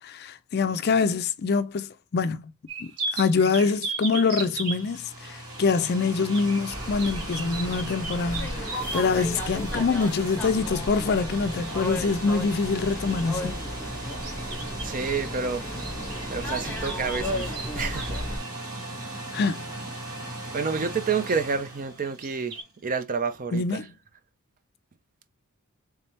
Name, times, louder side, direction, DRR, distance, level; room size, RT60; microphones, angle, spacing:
voice 1, 0.0-2.5 2.8-13.6 19.3-19.7 23.5-23.9, left 4 dB, 45° left, 0.4 m, -25 dB
sound 1, 2.7-9.2 10.8-13.4 14.1-20.2 20.6-20.8 21.1-21.5 22.0-22.6, right 4 dB, 85° right, 1.4 m, -38 dB
sound 2, 4.5-22.6, right 2 dB, 65° right, 2.2 m, -38 dB
sound 3, 6.7-18.4, left 1 dB, 5° left, 1.0 m, -35 dB
voice 2, 14.8-15.7 16.3-18.2 19.0-19.1 20.5-23.9, right 5 dB, 40° right, 0.4 m, -29 dB
3.5 x 3.2 x 2.8 m
head